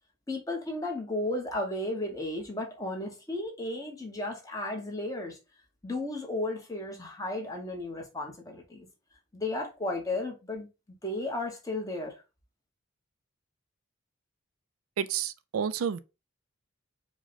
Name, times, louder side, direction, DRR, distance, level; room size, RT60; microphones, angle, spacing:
voice 1, 0.3-5.4 5.8-8.9 9.3-10.7 11.0-12.2, left 2 dB, 15° left, 1.0 m, -34 dB
voice 2, 15.0-16.0, right 7 dB, 90° right, 0.4 m, -30 dB
4.8 x 2.2 x 4.0 m
head